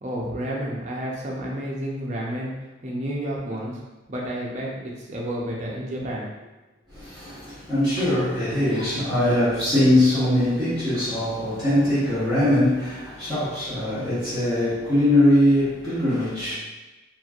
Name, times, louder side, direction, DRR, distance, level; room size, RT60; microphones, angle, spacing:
voice 1, 0.0-2.5 2.8-3.8 4.1-6.3, equal, 35° right, -3 dB, 0.5 m, -30 dB
voice 2, 6.9-16.5, left 1 dB, ahead, -18 dB, 1.0 m, -21 dB
3.0 x 2.5 x 2.4 m, 1.1 s
head